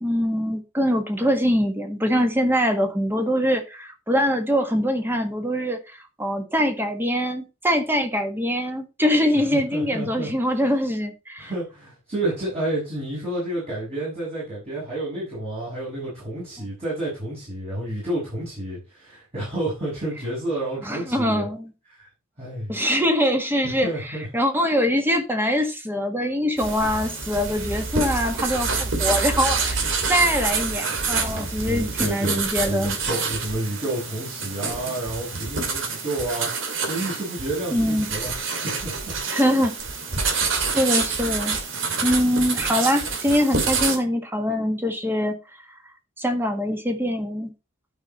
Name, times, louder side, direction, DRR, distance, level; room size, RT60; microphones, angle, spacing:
voice 1, 0.0-11.5 20.8-21.7 22.7-23.9 24.3-33.0 37.7-38.1 39.3-39.8 40.2-40.3 40.7-41.6 42.0-45.4 46.2-47.5, equal, 10° right, 1.7 m, -23 dB
voice 2, 9.5-10.3 11.4-21.5 21.9-22.1 22.4-22.8 23.6-24.3 31.6-39.1 42.3-42.8, right 1 dB, 30° right, 6.4 m, -30 dB
sound 1, 26.6-44.0, right 4 dB, 65° right, 2.5 m, -27 dB
12.0 x 5.8 x 4.2 m
head